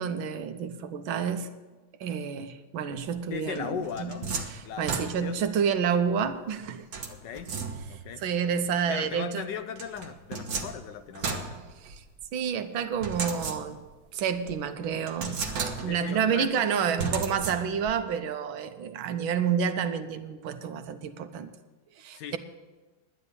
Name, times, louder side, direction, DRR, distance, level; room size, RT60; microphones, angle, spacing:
voice 1, 0.0-1.5 2.0-4.1 4.5-6.9 8.2-9.4 11.8-12.0 12.3-13.8 14.1-15.4 15.8-21.5 22.0-22.4, right 7 dB, 85° right, 9 dB, 1.6 m, -29 dB
voice 2, 3.3-4.3 4.6-5.4 7.1-7.5 7.9-8.3 8.9-11.6 15.9-16.9 22.1-22.4, left 8 dB, 70° left, 10 dB, 1.3 m, -37 dB
sound 1, 3.6-5.5 6.9-8.1 9.8-12.3 13.0-14.0 14.5-14.6 15.1-16.1 17.0-18.0, right 4 dB, 50° right, 1.5 m, -34 dB
11.0 x 9.8 x 6.9 m, 1.2 s
omnidirectional pair, 2.2 m